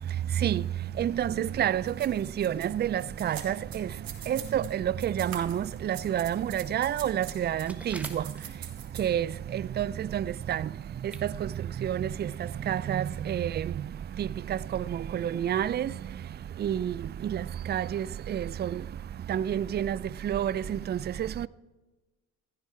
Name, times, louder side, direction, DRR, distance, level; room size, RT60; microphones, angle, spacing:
voice 1, 1.0-3.5 4.3-8.2 9.0-9.3 9.8-9.9 10.1-10.6 11.8-12.1 12.7-13.5 15.3-15.8 16.6-16.9 17.7-18.0 18.3-18.7 19.3-20.0 20.2-20.5 20.9-21.0, right 10 dB, 25° right, 0.4 m, -28 dB
sound 1, 1.8-4.7 5.0-9.0, right 8 dB, 60° right, 2.1 m, -44 dB
sound 2, 7.6-8.9 9.3-9.8 10.0-10.1 10.8-10.9 11.1-11.3 11.6-11.7 12.2-12.3, right 1 dB, 5° right, 1.4 m, -45 dB
15.5 x 11.0 x 4.8 m
hypercardioid pair, 50°, 40 cm